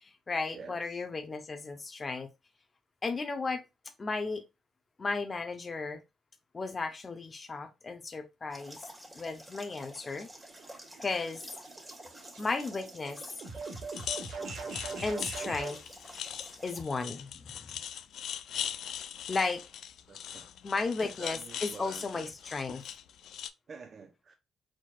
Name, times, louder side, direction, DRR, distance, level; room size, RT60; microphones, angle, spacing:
voice 1, 0.0-2.3 3.0-3.6 4.0-4.4 5.0-6.0 6.5-8.9 9.1-10.3 11.0-11.4 12.4-13.2 15.0-15.8 16.6-17.4 19.3-19.6 20.6-22.8, left 3 dB, 30° left, 0.7 m, -34 dB
voice 2, 0.5-1.0 20.1-20.5 21.0-22.3 23.7-24.4, right 5 dB, 45° right, 0.8 m, -48 dB
sound 1, 8.5-16.8, right 1 dB, 10° right, 2.0 m, -50 dB
sound 2, 10.3-15.8, right 4 dB, 75° right, 1.6 m, -42 dB
sound 3, 13.9-23.5, left 9 dB, 75° left, 0.5 m, -41 dB
4.5 x 4.2 x 2.4 m
cardioid pair, 90°, 0 cm